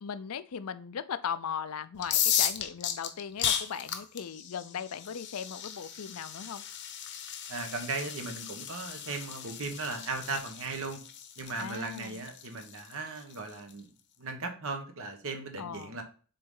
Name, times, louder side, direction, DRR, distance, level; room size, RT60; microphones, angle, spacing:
voice 1, 0.0-6.6 11.6-12.2 15.6-16.0, left 7 dB, 80° left, 13 dB, 0.5 m, -38 dB
sound 1, 2.0-13.7, left 9 dB, 55° left, 0.8 m, -35 dB
voice 2, 7.5-11.0 11.4-13.9 14.2-16.0, right 3 dB, 70° right, 5 dB, 1.2 m, -37 dB
6.7 x 4.1 x 3.8 m, 0.40 s
head